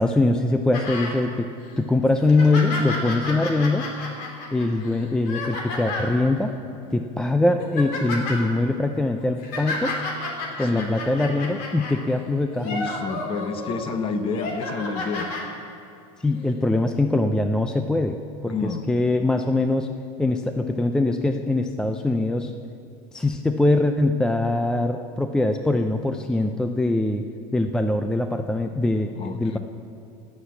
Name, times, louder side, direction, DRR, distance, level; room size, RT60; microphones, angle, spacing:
voice 1, 0.0-1.5 1.8-3.9 4.5-6.5 6.9-10.0 10.6-12.8 16.2-19.9 20.2-22.5 23.1-27.2 27.5-29.6, left 2 dB, 5° left, 6 dB, 0.4 m, -22 dB
sound 1, 0.7-1.2 1.6-1.7 2.2-6.2 6.9-7.1 7.4-8.4 9.2-12.0 12.5-13.8 14.2-15.4 16.4-16.5, left 2 dB, 55° left, 3.1 m, -32 dB
voice 2, 12.6-15.3 18.5-18.9 29.2-29.6, left 4 dB, 30° left, 9 dB, 0.9 m, -29 dB
16.0 x 6.6 x 8.2 m, 2.5 s
supercardioid pair, 145°, 19 cm